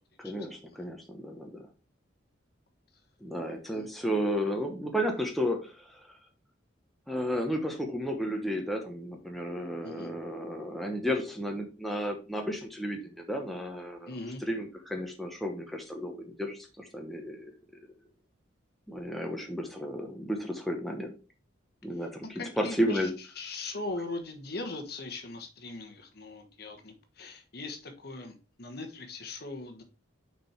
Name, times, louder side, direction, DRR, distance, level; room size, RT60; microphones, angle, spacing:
voice 1, 0.2-1.7 3.2-6.2 7.1-14.1 14.4-17.5 18.9-21.1 21.8-23.1, equal, ahead, 2 dB, 0.9 m, -33 dB
voice 2, 14.1-14.4 22.0-29.8, left 3 dB, 50° left, 5 dB, 1.2 m, -40 dB
6.2 x 4.5 x 4.4 m, 0.33 s
head